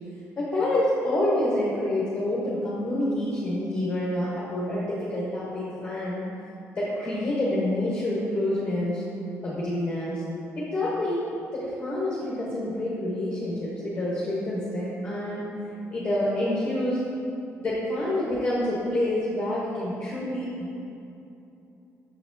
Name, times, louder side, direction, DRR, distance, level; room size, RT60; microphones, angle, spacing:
voice 1, 0.4-6.2 6.8-9.0 9.4-10.2 10.6-15.5 15.9-17.1 17.6-20.5, left 1 dB, 20° left, -7 dB, 0.9 m, -27 dB
6.5 x 5.8 x 2.6 m, 2.8 s
cardioid pair, 160°, 6 cm